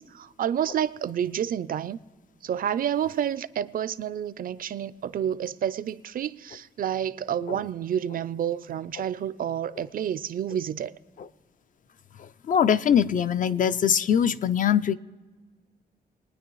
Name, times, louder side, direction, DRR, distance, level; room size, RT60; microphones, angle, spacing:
voice 1, 0.0-2.0 2.4-10.9, right 9 dB, 60° right, 0.4 m, -29 dB
voice 2, 12.2-14.9, left 8 dB, 50° left, 0.4 m, -23 dB
22.5 x 9.6 x 3.1 m
wide cardioid pair, 165°, 17 cm